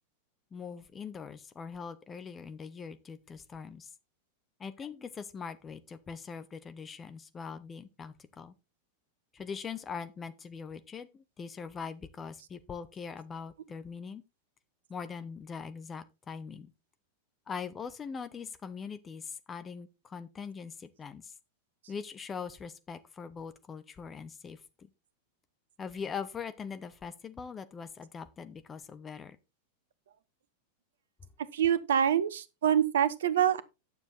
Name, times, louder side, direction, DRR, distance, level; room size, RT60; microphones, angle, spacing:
voice 1, 0.5-3.9 4.6-8.5 9.3-14.2 14.9-16.7 17.5-21.3 21.9-24.9 25.8-29.4, left 6 dB, 20° left, 1.0 m, -42 dB
voice 2, 31.5-33.6, right 9 dB, 60° right, 0.8 m, -26 dB
9.7 x 7.0 x 4.3 m
figure-of-eight pair, 90°, 0 cm